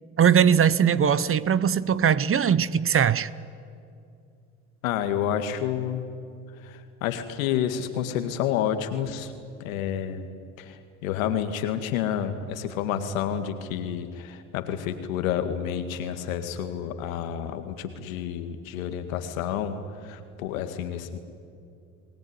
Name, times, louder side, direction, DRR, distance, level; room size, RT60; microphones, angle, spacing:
voice 1, 0.2-3.3, right 8 dB, 35° right, 0.9 m, -20 dB
voice 2, 4.8-6.0 6.6-9.3 9.6-10.3 10.6-19.8 20.0-21.2, left 9 dB, 85° left, 2.1 m, -29 dB
29.5 x 19.0 x 9.7 m
hypercardioid pair, 70°, 40 cm